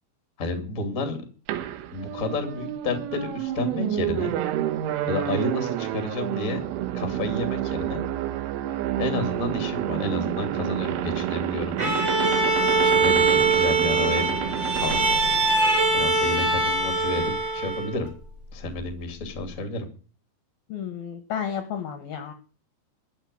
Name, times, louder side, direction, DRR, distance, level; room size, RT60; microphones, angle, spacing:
voice 1, 0.4-1.2 1.9-4.4 5.1-6.6 6.9-8.0 9.0-11.8 12.8-15.0 15.9-18.1 18.5-19.8, left 3 dB, 30° left, 6 dB, 1.6 m, -30 dB
sound 1, 1.5-16.0, right 12 dB, 80° right, 3.4 m, -29 dB
Bowed string instrument, 11.8-18.1, right 3 dB, 35° right, 3.8 m, -22 dB
voice 2, 20.7-22.3, left 8 dB, 70° left, 8 dB, 2.4 m, -32 dB
13.0 x 7.1 x 8.3 m, 0.40 s
omnidirectional pair, 5.8 m